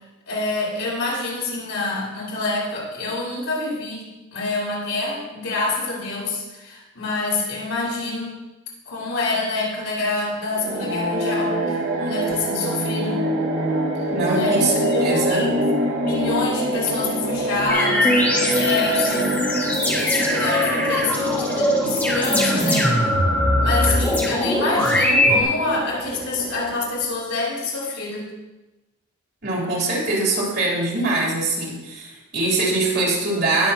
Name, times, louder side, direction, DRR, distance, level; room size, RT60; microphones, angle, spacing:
voice 1, 0.3-4.1 4.3-8.4 8.8-13.3 14.3-15.7 16.0-23.1 23.6-28.3, left 3 dB, 75° left, -6 dB, 4.5 m, -27 dB
sound 1, 10.5-27.1, right 1 dB, 70° right, 1.9 m, -26 dB
voice 2, 14.1-15.4 29.4-33.7, right 2 dB, 45° right, -4 dB, 3.5 m, -23 dB
sound 2, 17.7-25.4, left 1 dB, 10° left, 1.9 m, -21 dB
19.5 x 7.6 x 2.9 m, 1.1 s
head